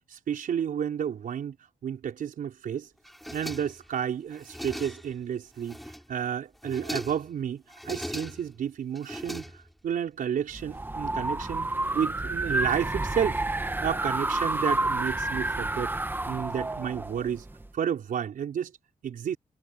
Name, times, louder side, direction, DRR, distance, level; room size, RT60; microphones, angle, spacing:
voice 1, 0.1-1.6 1.8-2.9 3.3-5.8 6.1-16.0 16.3-17.4 17.7-18.7 19.0-19.4, right 8 dB, 85° right, 5.2 m, -31 dB
sound 1, 3.0-3.9 4.3-5.2 5.6-6.2 6.6-7.3 7.7-8.6 9.0-9.9, equal, ahead, 7.2 m, -39 dB
sound 2, 10.5-17.7, right 2 dB, 15° right, 1.5 m, -30 dB
wide cardioid pair, 110°, 14 cm